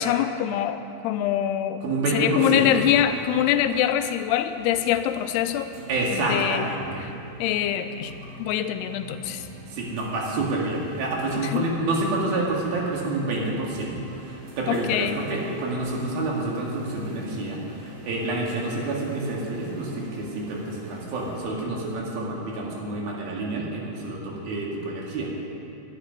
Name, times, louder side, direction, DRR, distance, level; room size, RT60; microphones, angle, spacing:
voice 1, 0.0-1.8 2.1-5.7 6.1-6.7 7.4-8.1 8.4-9.5 11.4-11.7 14.7-15.2, left 11 dB, 90° left, 9 dB, 2.7 m, -24 dB
voice 2, 1.8-2.9 5.9-7.1 9.7-25.4, right 2 dB, 70° right, -2 dB, 3.9 m, -28 dB
sound 1, 2.5-21.5, equal, 45° right, 2.8 m, -44 dB
11.0 x 11.0 x 9.7 m, 2.6 s
omnidirectional pair, 4.6 m